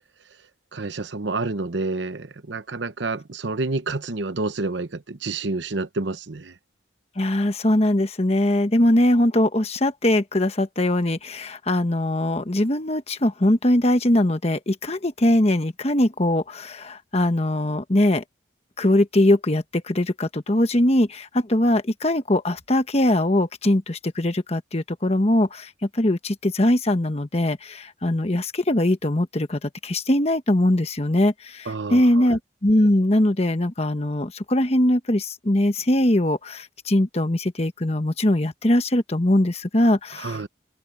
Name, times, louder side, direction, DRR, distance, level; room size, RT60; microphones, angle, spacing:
voice 1, 0.7-6.5 31.7-32.3 40.2-40.5, right 3 dB, 65° right, 0.9 m, -29 dB
voice 2, 7.2-18.2 18.8-40.5, left 1 dB, 30° left, 1.2 m, -21 dB
head